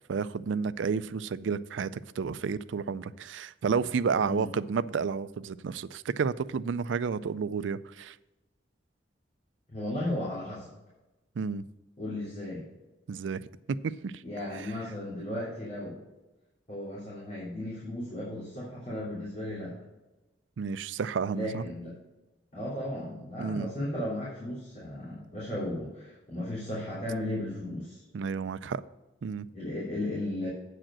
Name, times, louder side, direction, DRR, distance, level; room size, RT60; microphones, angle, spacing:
voice 1, 0.1-8.1 11.4-11.6 13.1-13.4 13.7-14.1 14.6-14.7 20.6-21.6 23.4-23.7 28.1-28.8 29.2-29.5, right 5 dB, 80° right, 16 dB, 0.4 m, -31 dB
voice 2, 9.7-10.7 12.0-12.7 14.2-16.0 16.7-19.7 21.3-21.9 22.5-28.0 29.5-30.5, left 1 dB, 40° left, -8 dB, 3.3 m, -35 dB
8.7 x 5.0 x 7.4 m, 1.1 s
head